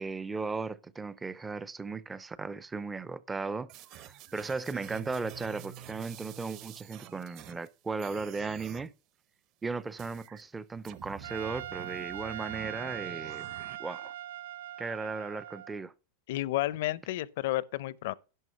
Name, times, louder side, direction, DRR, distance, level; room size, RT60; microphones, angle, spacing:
voice 1, 0.0-8.9 9.6-13.4 13.8-14.1 14.8-15.9, right 4 dB, 10° right, 0.5 m, -36 dB
sound 1, 3.7-7.7 8.0-8.9 10.0-10.4 10.8-13.8, right 11 dB, 40° right, 0.8 m, -49 dB
Guitar, 4.7-7.3, right 10 dB, 55° right, 2.2 m, -49 dB
Trumpet, 11.2-15.8, right 13 dB, 85° right, 0.6 m, -41 dB
voice 2, 16.3-18.1, left 16 dB, 65° left, 0.6 m, -31 dB
11.0 x 6.2 x 5.4 m
supercardioid pair, 155°, 0 cm